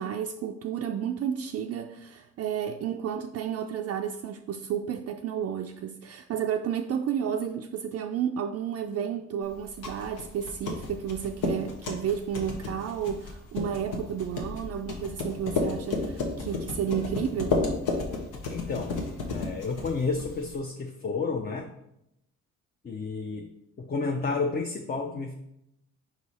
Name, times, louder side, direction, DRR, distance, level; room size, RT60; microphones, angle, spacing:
voice 1, 0.0-17.6, right 8 dB, 55° right, 0.4 m, -32 dB
sound 1, 9.5-20.6, left 3 dB, 85° left, 1.3 m, -32 dB
voice 2, 18.5-21.7 22.8-23.5 23.8-25.3, left 4 dB, 30° left, 0.6 m, -31 dB
4.9 x 4.7 x 4.2 m
cardioid pair, 90°, 30 cm